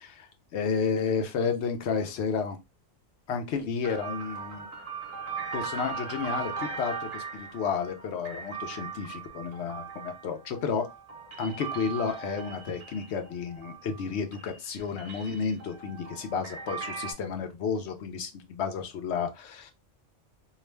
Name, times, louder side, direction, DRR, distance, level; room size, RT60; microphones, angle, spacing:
voice 1, 0.0-2.6 3.3-4.7 5.5-10.8 11.4-19.7, left 5 dB, 70° left, 0.8 m, -31 dB
sound 1, 3.8-14.1 14.3-17.1, right 5 dB, 50° right, 0.9 m, -39 dB
2.4 x 2.2 x 3.1 m
omnidirectional pair, 1.2 m